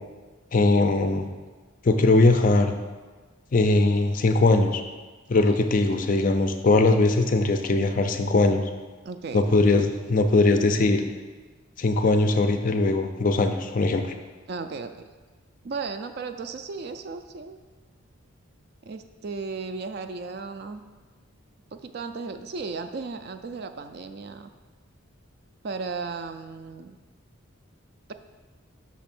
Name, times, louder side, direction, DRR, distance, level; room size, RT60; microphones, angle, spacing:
voice 1, 0.5-1.2 1.8-2.7 3.5-4.8 5.3-8.6 9.3-11.0 11.8-14.1, left 2 dB, 40° left, 7 dB, 0.4 m, -20 dB
voice 2, 5.3-5.7 9.0-9.5 14.5-15.0 15.6-17.6 18.8-20.8 21.7-24.5 25.6-27.0 28.1-28.2, right 4 dB, 50° right, 8 dB, 0.3 m, -35 dB
6.2 x 3.5 x 5.9 m, 1.3 s
head